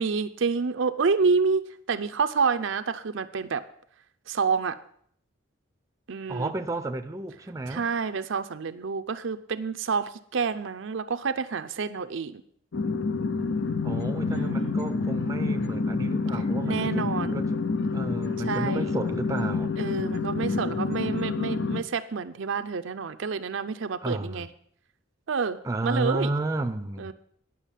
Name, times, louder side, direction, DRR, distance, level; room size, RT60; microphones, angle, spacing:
voice 1, 0.0-3.6 4.3-4.8 6.1-6.5 7.7-12.4 14.3-14.8 16.6-17.4 18.5-18.9 19.8-24.5 25.3-26.3 27.0-27.1, right 5 dB, 65° right, 0.5 m, -28 dB
voice 2, 6.3-7.9 13.8-17.5 17.9-19.7 24.0-24.4 25.6-27.1, right 2 dB, 15° right, 0.6 m, -32 dB
sound 1, 12.7-21.8, left 4 dB, 60° left, 0.6 m, -28 dB
10.0 x 6.0 x 7.3 m
head